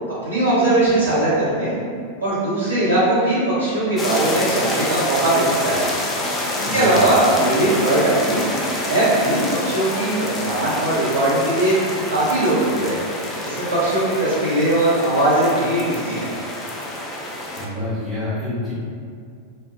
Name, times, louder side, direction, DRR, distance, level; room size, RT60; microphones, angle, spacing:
voice 1, 0.2-1.7 2.2-5.8 6.6-8.4 8.8-11.7 12.1-13.0 13.4-16.3, right 1 dB, 85° right, -13 dB, 1.1 m, -19 dB
sound 1, 4.0-17.7, left 1 dB, 20° left, 0.3 m, -27 dB
voice 2, 6.6-7.1 17.4-18.7, left 2 dB, 10° right, -11 dB, 1.0 m, -28 dB
2.6 x 2.1 x 2.2 m, 2.2 s
figure-of-eight pair, 90°, 0 cm